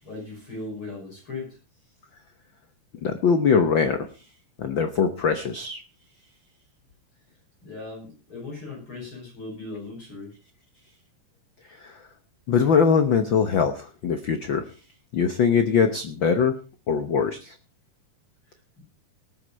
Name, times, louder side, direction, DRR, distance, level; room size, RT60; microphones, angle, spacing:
voice 1, 0.0-1.6 7.6-10.3 18.5-18.8, left 3 dB, 35° left, -1 dB, 6.9 m, -38 dB
voice 2, 3.0-4.1 4.6-5.8 11.8-12.0 12.5-14.6 15.1-16.5 16.9-17.5, left 6 dB, 90° left, 9 dB, 1.0 m, -22 dB
19.0 x 9.9 x 4.3 m, 0.34 s
omnidirectional pair, 3.8 m